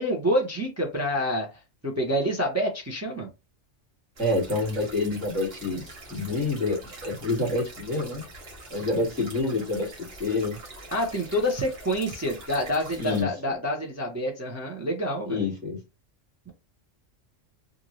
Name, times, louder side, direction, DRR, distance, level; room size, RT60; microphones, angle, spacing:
voice 1, 0.0-1.5 1.8-3.3 10.9-15.5, equal, 25° right, 0 dB, 0.3 m, -27 dB
voice 2, 4.2-8.2 8.7-10.6 13.0-13.3 15.3-15.8, left 2 dB, ahead, -6 dB, 1.4 m, -27 dB
sound 1, 4.2-13.2, right 2 dB, 55° right, 1.2 m, -44 dB
2.6 x 2.5 x 3.0 m, 0.26 s
omnidirectional pair, 1.3 m